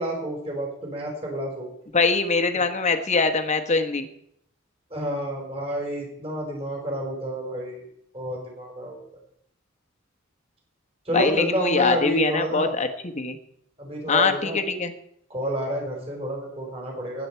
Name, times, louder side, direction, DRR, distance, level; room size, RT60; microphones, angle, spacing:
voice 1, 0.0-1.7 2.5-2.6 4.9-7.8 8.1-9.0 11.1-12.7 13.8-14.6 15.3-17.3, right 1 dB, 30° right, 0 dB, 4.3 m, -29 dB
voice 2, 1.9-4.1 11.1-13.4 14.1-14.9, left 4 dB, 35° left, 7 dB, 1.1 m, -23 dB
19.0 x 8.2 x 4.5 m, 0.70 s
head